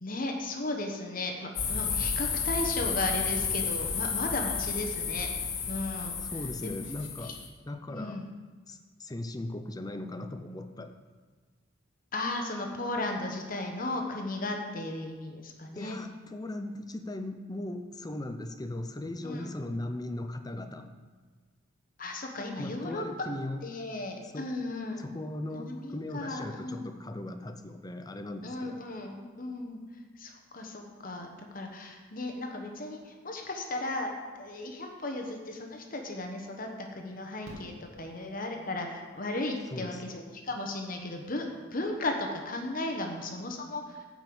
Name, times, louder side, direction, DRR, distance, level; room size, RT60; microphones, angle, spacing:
voice 1, 0.0-5.3 5.7-6.2 6.6-6.8 7.2-7.3 7.9-8.3 12.1-16.0 19.2-19.5 22.0-23.0 23.6-25.0 25.5-26.8 28.4-29.8 30.2-41.4 41.7-44.1, left 2 dB, 45° left, 3 dB, 1.1 m, -35 dB
sound 1, 1.6-7.5, left 6 dB, 65° left, 1.5 m, -32 dB
voice 2, 6.2-7.3 7.7-8.2 8.7-11.0 15.7-20.9 22.6-23.6 24.2-24.5 25.0-28.8 39.7-40.0, left 1 dB, 20° left, 8 dB, 0.6 m, -38 dB
Fireworks, 37.4-38.8 40.5-40.6 40.8-40.9, equal, 80° right, 2.3 m, -49 dB
9.7 x 5.4 x 7.8 m, 1.4 s
head